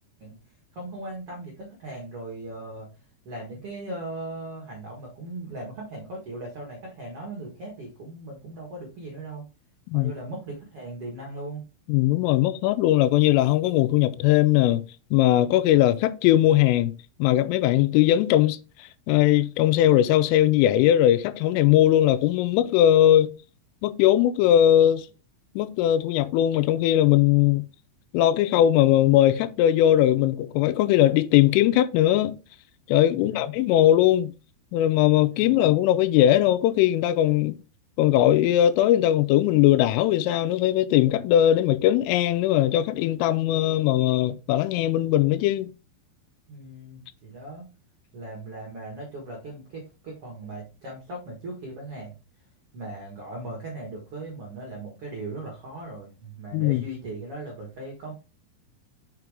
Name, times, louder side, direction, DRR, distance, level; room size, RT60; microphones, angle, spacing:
voice 1, 0.7-2.9 3.2-9.4 9.9-11.6 33.0-33.5 35.2-35.6 46.5-47.6 48.1-52.1 52.7-58.1, right 2 dB, 70° right, 1.3 m, -38 dB
voice 2, 11.9-14.9 15.1-16.9 17.2-18.6 19.1-23.3 23.8-25.1 25.6-27.6 28.1-32.4 32.9-34.3 34.7-37.6 38.0-45.7 56.5-56.8, left 12 dB, 90° left, 3.2 m, -20 dB
6.1 x 5.7 x 3.5 m
omnidirectional pair, 5.6 m